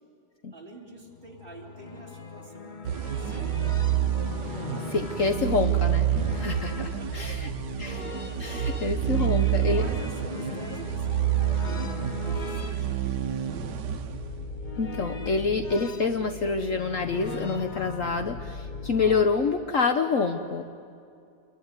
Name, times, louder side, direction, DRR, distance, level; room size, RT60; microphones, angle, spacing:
voice 1, 0.5-3.9 5.2-5.6 6.9-7.8 9.2-11.9 12.2-13.6, right 1 dB, 30° right, 0 dB, 3.5 m, -47 dB
sound 1, 1.0-19.2, left 4 dB, 30° left, 1.3 m, -38 dB
sound 2, 2.8-14.7, right 11 dB, 85° right, 1.7 m, -28 dB
voice 2, 4.9-7.5 7.8-8.0 8.4-9.8 14.8-20.7, left 4 dB, 55° left, 7 dB, 1.3 m, -27 dB
27.0 x 22.0 x 9.6 m, 2.4 s
omnidirectional pair, 1.8 m